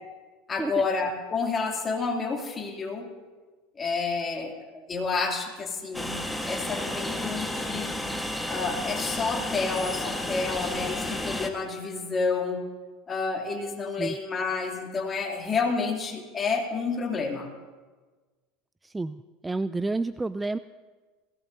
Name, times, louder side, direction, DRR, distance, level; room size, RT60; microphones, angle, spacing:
voice 1, 0.5-3.1 3.8-4.6 4.9-6.2 6.5-7.9 8.5-12.6 13.1-17.5, left 4 dB, 30° left, 0 dB, 2.7 m, -29 dB
Train, 5.9-11.5, left 1 dB, 5° left, 1.4 m, -32 dB
voice 2, 18.8-20.6, right 3 dB, 15° right, 15 dB, 0.3 m, -30 dB
21.5 x 17.0 x 2.7 m, 1.3 s
hypercardioid pair, 85°, 0 cm